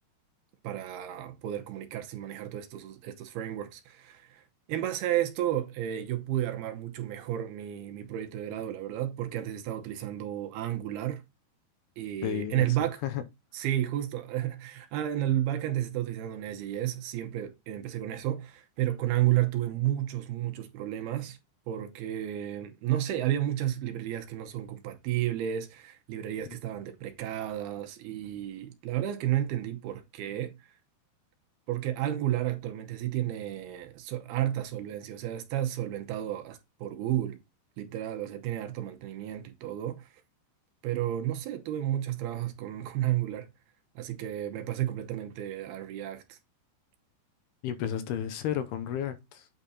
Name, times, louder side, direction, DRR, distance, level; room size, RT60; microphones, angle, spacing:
voice 1, 0.6-4.4 4.7-11.2 12.0-13.0 13.5-21.4 21.7-30.6 31.7-37.4 37.8-40.1 40.8-43.5 44.0-46.4, right 12 dB, 75° right, 2.7 m, -32 dB
voice 2, 12.2-12.8 13.0-13.2 47.6-49.5, left 10 dB, 80° left, 2.7 m, -32 dB
9.1 x 4.1 x 4.1 m
omnidirectional pair, 4.9 m